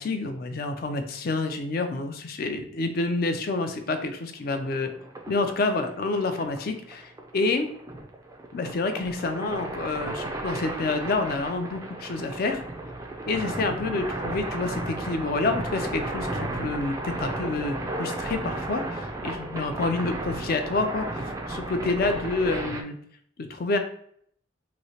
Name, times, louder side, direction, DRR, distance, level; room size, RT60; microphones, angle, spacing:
voice 1, 0.0-4.9 5.3-7.7 8.5-12.6 13.3-23.0 23.5-23.8, left 3 dB, 50° left, 7 dB, 0.4 m, -28 dB
sound 1, 4.5-22.8, right 2 dB, 15° right, 0.3 m, -34 dB
3.1 x 2.7 x 2.8 m, 0.65 s
head